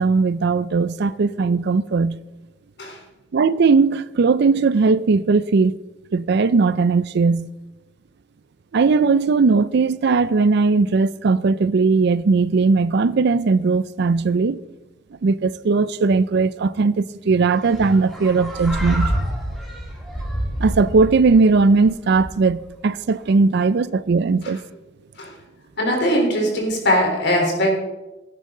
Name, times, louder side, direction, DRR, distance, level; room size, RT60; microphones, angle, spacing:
voice 1, 0.0-2.2 3.3-5.8 6.1-7.5 8.7-14.6 15.2-19.1 20.6-24.6, right 4 dB, 60° right, 0.4 m, -18 dB
sound 1, 17.6-22.7, equal, ahead, 5.1 m, -27 dB
voice 2, 25.8-27.8, equal, 60° left, 3.7 m, -20 dB
16.0 x 11.0 x 3.8 m
head